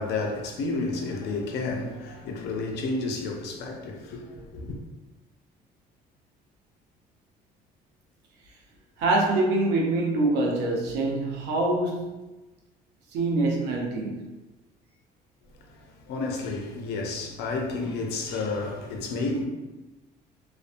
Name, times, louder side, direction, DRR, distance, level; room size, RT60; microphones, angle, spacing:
voice 1, 0.0-4.8 15.7-19.5, left 3 dB, 80° left, 0.5 m, -31 dB
voice 2, 9.0-12.2 13.1-14.3, right 2 dB, 90° right, 0.6 m, -25 dB
2.5 x 2.2 x 2.5 m
cardioid pair, 110°, 17 cm